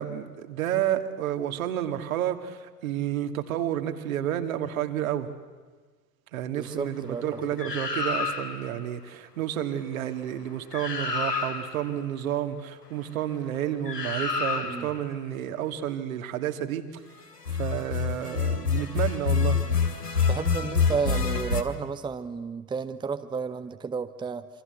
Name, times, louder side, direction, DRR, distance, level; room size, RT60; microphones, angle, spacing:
voice 1, 0.0-5.3 6.3-17.0 17.5-19.6, right 11 dB, 60° right, 7 dB, 2.4 m, -30 dB
voice 2, 6.5-7.2 14.6-14.9 20.3-24.5, right 5 dB, 10° right, 10 dB, 0.9 m, -32 dB
sound 1, 7.6-8.7 10.4-10.5 10.7-11.9 13.8-15.0 17.3-21.6, left 5 dB, 80° left, 2.8 m, -27 dB
27.0 x 26.0 x 8.1 m, 1.4 s
figure-of-eight pair, 85°, 47 cm